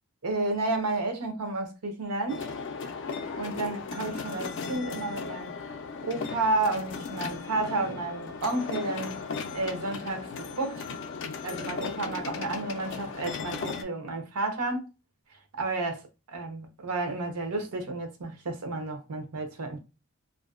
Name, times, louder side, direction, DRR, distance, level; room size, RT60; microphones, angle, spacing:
voice 1, 0.2-2.5 3.4-5.6 6.0-9.2 9.5-10.9 11.4-14.9 15.6-16.0 16.3-19.8, right 2 dB, 90° right, 0.7 m, -31 dB
sound 1, 2.3-13.8, left 5 dB, 55° left, 0.3 m, -36 dB
2.5 x 2.1 x 2.3 m
head